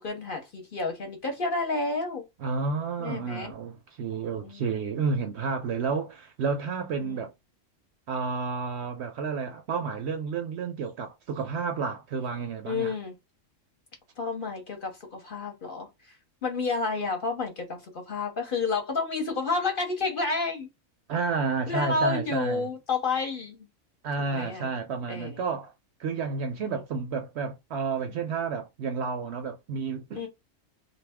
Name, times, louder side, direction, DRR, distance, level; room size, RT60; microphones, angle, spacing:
voice 1, 0.0-2.2 3.0-3.5 4.4-5.0 7.0-7.2 12.7-13.1 14.2-15.9 16.4-20.7 21.7-23.7 24.2-24.7 25.1-25.4 26.7-26.8 30.2-30.3, left 3 dB, 50° left, 0.8 m, -30 dB
voice 2, 2.4-7.3 8.1-12.9 21.1-22.7 24.0-25.7 26.0-30.3, right 5 dB, 65° right, 0.7 m, -31 dB
2.6 x 2.3 x 3.4 m
omnidirectional pair, 1.4 m